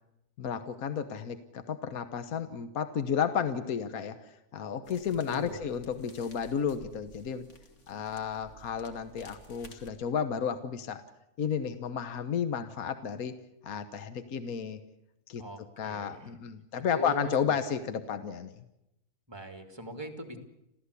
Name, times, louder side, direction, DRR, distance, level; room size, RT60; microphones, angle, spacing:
voice 1, 0.4-7.5 7.9-11.0 11.4-13.3 13.6-14.8 15.3-15.4 15.8-18.6, left 7 dB, 70° left, 10 dB, 1.6 m, -32 dB
sound 1, 4.8-9.9, right 1 dB, 50° left, 2.7 m, -54 dB
voice 2, 5.3-5.7 15.4-16.3 16.9-17.5 19.3-20.4, right 1 dB, 15° right, 6 dB, 2.8 m, -41 dB
27.5 x 15.5 x 8.3 m, 0.86 s
omnidirectional pair, 1.6 m